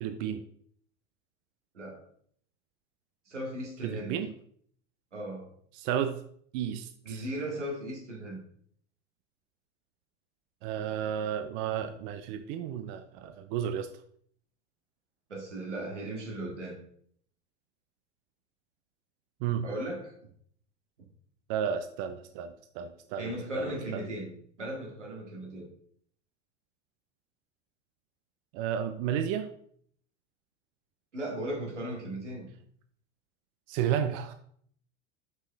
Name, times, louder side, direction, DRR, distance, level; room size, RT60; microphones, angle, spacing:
voice 1, 0.0-0.4 3.8-4.3 5.7-6.2 6.5-7.3 10.6-13.9 19.4-19.6 21.5-24.0 28.5-29.5 33.7-34.3, right 9 dB, 45° right, 8 dB, 0.6 m, -32 dB
voice 2, 3.3-4.2 5.1-5.5 7.1-8.4 15.3-16.8 19.6-20.2 23.2-24.3 24.6-25.7 31.1-32.5, right 1 dB, 85° right, -1 dB, 2.1 m, -37 dB
5.9 x 5.5 x 3.4 m, 0.62 s
hypercardioid pair, 90°, 35 cm